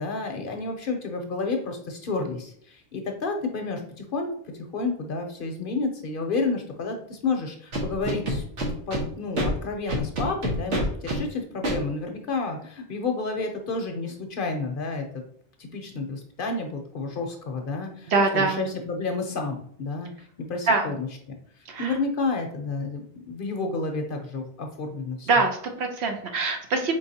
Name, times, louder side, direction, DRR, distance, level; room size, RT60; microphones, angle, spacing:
voice 1, 0.0-4.3 4.7-8.4 8.9-15.1 15.6-20.1 20.4-21.1 21.8-25.3, left 3 dB, 55° left, 4 dB, 0.7 m, -30 dB
Scratching (performance technique), 7.7-9.0 9.4-9.5 9.9-11.2 11.6-11.8, right 1 dB, 85° right, 1.4 m, -26 dB
voice 2, 18.1-18.7 20.7-21.0 21.7-22.0 25.3-27.0, right 3 dB, 70° right, 4 dB, 1.0 m, -24 dB
4.6 x 3.4 x 2.7 m, 0.63 s
omnidirectional pair, 1.2 m